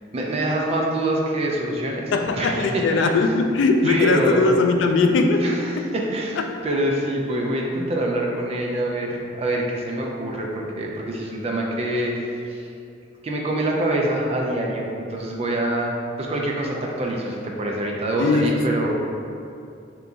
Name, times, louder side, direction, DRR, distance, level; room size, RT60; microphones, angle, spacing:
voice 1, 0.1-3.1 3.8-4.4 5.4-6.4 6.6-12.7 13.2-19.0, right 1 dB, 35° right, -1 dB, 0.4 m, -25 dB
voice 2, 2.1-5.9 6.4-6.5 18.2-18.6 18.9-19.1, left 3 dB, 75° left, 4 dB, 0.3 m, -20 dB
2.9 x 2.5 x 3.5 m, 2.5 s
head